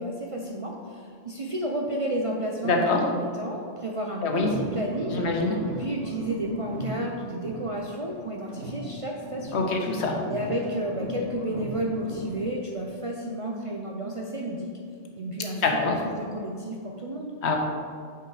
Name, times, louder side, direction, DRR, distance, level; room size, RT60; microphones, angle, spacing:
voice 1, 0.0-5.3 5.6-9.7 10.2-14.7 15.2-17.3, right 1 dB, 45° right, -1 dB, 0.5 m, -32 dB
voice 2, 2.6-3.0 4.2-4.5 5.1-5.6 9.5-10.2 15.6-15.9 17.4-17.6, left 3 dB, 70° left, 2 dB, 1.1 m, -24 dB
sound 1, 4.3-8.2 8.5-12.5, right 1 dB, 70° right, 1.4 m, -37 dB
5.8 x 4.8 x 4.8 m, 2.1 s
omnidirectional pair, 1.2 m